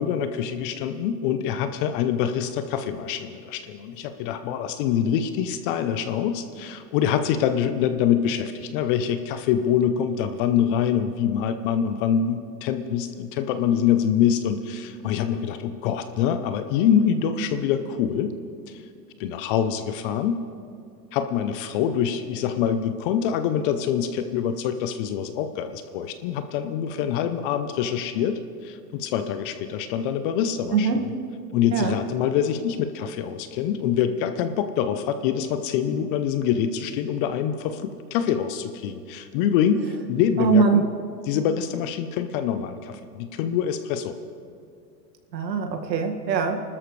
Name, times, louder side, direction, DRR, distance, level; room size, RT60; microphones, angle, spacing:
voice 1, 0.0-18.4 18.7-18.8 19.2-20.4 21.1-31.1 31.5-40.8 41.3-44.2, left 8 dB, 35° left, 10 dB, 0.6 m, -25 dB
voice 2, 30.7-31.0 31.7-32.0 40.4-40.8 45.3-46.6, right 5 dB, 80° right, 4 dB, 2.0 m, -22 dB
27.5 x 13.0 x 3.2 m, 2.4 s
hypercardioid pair, 130°, 50 cm